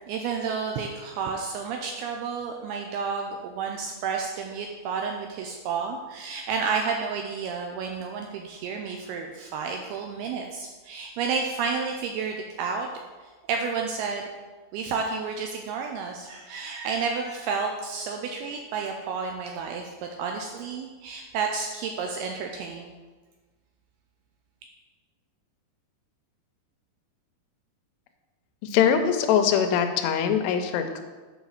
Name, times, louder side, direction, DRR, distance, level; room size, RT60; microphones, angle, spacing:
voice 1, 0.1-12.9 13.5-14.3 14.7-23.0, right 5 dB, 85° right, 2 dB, 2.3 m, -31 dB
voice 2, 28.6-31.0, left 8 dB, 80° left, 6 dB, 2.8 m, -22 dB
7.9 x 4.1 x 6.4 m, 1.3 s
omnidirectional pair, 5.0 m